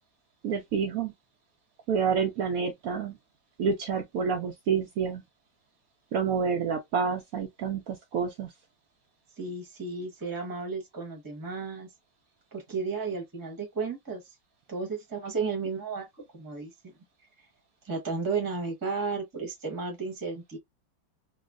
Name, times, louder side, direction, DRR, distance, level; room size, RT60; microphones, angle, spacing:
voice 1, 0.4-1.1 1.9-3.1 3.6-5.2 6.1-8.5, right 6 dB, 90° right, 0.7 m, -28 dB
voice 2, 9.4-11.9 12.5-14.2 14.7-16.1 16.3-16.7 17.8-20.6, right 4 dB, 20° right, 0.6 m, -33 dB
3.1 x 2.3 x 2.4 m
omnidirectional pair, 2.1 m